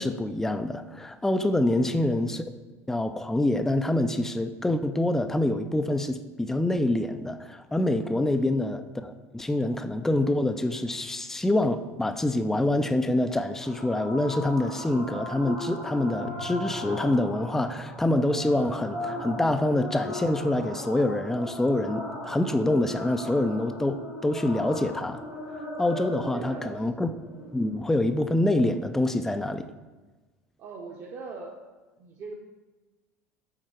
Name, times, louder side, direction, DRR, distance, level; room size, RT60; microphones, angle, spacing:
voice 1, 0.0-2.4 2.9-25.2 25.5-27.1 27.5-29.7, left 1 dB, 5° left, 9 dB, 0.4 m, -26 dB
voice 2, 1.7-2.1 8.3-8.6 26.3-26.9 30.6-31.6 32.0-32.3, right 4 dB, 40° right, -1 dB, 0.9 m, -41 dB
sound 1, 13.6-28.6, left 1 dB, 90° left, 2.3 m, -38 dB
G full up, 16.2-25.2, right 3 dB, 65° left, 0.7 m, -47 dB
7.4 x 4.4 x 4.5 m, 1.2 s
figure-of-eight pair, 70°, 8 cm